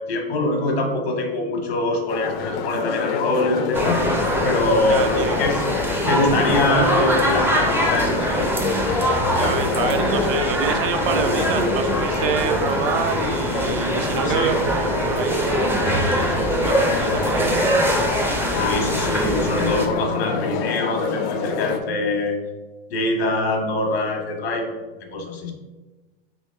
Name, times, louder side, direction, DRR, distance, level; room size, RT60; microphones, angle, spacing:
voice 1, 0.0-4.0 4.4-5.6 6.0-8.5 14.2-14.5 18.5-22.3 22.9-24.7 25.1-25.5, left 2 dB, 85° left, 3 dB, 1.1 m, -23 dB
sound 1, 2.1-21.8, left 7 dB, 50° left, 0.5 m, -27 dB
sound 2, 3.7-19.9, right 1 dB, 5° right, 0.4 m, -23 dB
voice 2, 4.8-5.4 9.3-18.1, right 7 dB, 60° right, 8 dB, 0.6 m, -27 dB
3.5 x 3.0 x 4.3 m, 1.2 s
hypercardioid pair, 120°, 31 cm